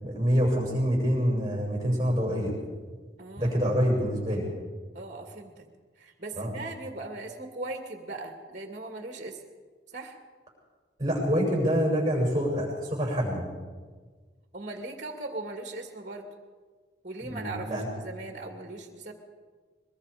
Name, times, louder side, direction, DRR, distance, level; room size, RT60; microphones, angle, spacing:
voice 1, 0.0-2.5 3.4-4.5 6.4-6.5 11.0-13.5 17.3-17.9, equal, 20° right, -1 dB, 7.1 m, -26 dB
voice 2, 3.2-3.6 4.9-5.7 6.0-9.4 9.9-10.2 14.5-16.3 17.0-19.1, right 2 dB, 40° right, 4 dB, 2.2 m, -39 dB
23.5 x 22.0 x 5.1 m, 1.5 s
head